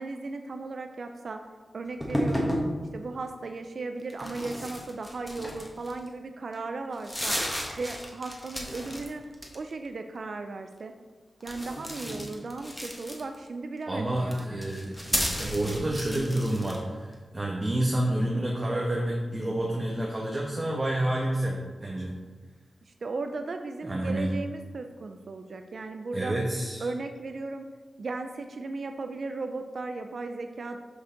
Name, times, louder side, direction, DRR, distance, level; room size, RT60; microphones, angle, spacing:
voice 1, 0.0-1.4 1.7-2.5 2.9-7.4 7.8-9.2 9.5-10.9 11.4-14.6 22.9-26.4 26.8-27.7 28.0-30.8, right 3 dB, 65° right, 6 dB, 0.5 m, -36 dB
sound 1, 2.0-2.7 4.1-6.1 6.5-6.6 6.9-9.1 9.3-9.9 11.4-13.5 14.2-16.8, equal, 10° left, 1.6 m, -33 dB
voice 2, 13.9-22.2 23.8-24.3 26.1-26.9, right 1 dB, 30° right, -2 dB, 1.2 m, -29 dB
6.7 x 5.1 x 5.1 m, 1.4 s
cardioid pair, 55°, 0 cm